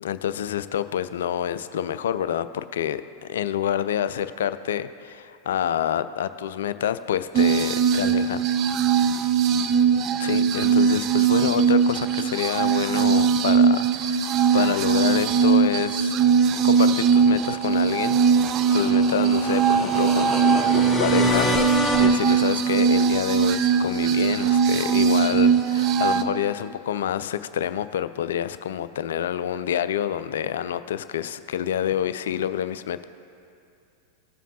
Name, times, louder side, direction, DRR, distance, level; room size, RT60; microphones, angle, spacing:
voice 1, 0.0-8.4 10.2-16.2 16.6-18.2 18.7-33.0, left 10 dB, 60° left, 13 dB, 0.3 m, -27 dB
sound 1, 7.3-26.2, right 6 dB, 35° right, 0.4 m, -20 dB
sound 2, 17.3-22.1, left 2 dB, ahead, 1.0 m, -28 dB
16.5 x 7.1 x 2.8 m, 2.5 s
figure-of-eight pair, 90°, 0 cm